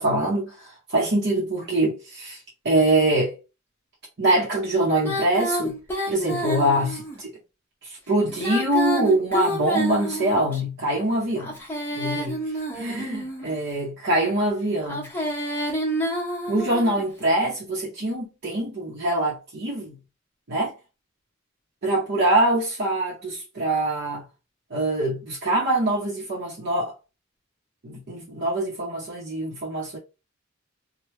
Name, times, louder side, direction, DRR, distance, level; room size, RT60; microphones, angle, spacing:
voice 1, 0.0-2.4 2.6-3.3 4.2-5.7 6.1-7.3 7.8-11.5 11.9-12.4 12.7-15.1 16.5-20.0 20.5-20.7 21.8-24.2 24.7-26.9 27.8-30.0, right 1 dB, 55° right, 0.8 m, -24 dB
Female singing, 5.0-7.2 8.3-10.6 11.4-13.5 14.8-17.0, equal, 10° left, 1.1 m, -29 dB
3.1 x 2.2 x 3.1 m
head